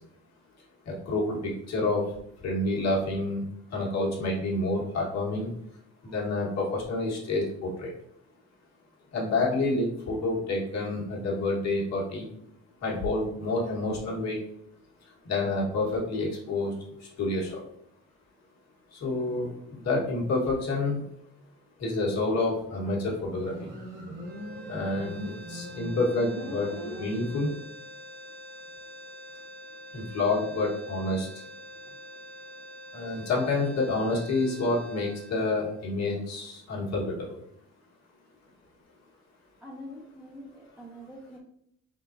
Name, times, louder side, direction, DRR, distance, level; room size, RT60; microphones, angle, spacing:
voice 1, 0.9-2.0 2.4-3.4 3.7-5.5 6.0-7.9 9.1-12.3 12.8-14.4 15.2-16.7 17.2-17.6 18.9-21.0 21.8-23.7 24.7-25.2 25.5-26.7 27.0-27.5 29.9-31.3 32.9-37.0, left 2 dB, 60° left, -3 dB, 1.4 m, -28 dB
Motorcycle, 23.3-27.7, equal, 80° right, 1.5 m, -40 dB
sound 1, 24.2-36.5, left 1 dB, 30° right, 0.6 m, -46 dB
voice 2, 39.6-41.4, equal, 5° right, -3 dB, 1.2 m, -45 dB
3.9 x 3.8 x 2.6 m, 0.72 s
cardioid pair, 90°, 30 cm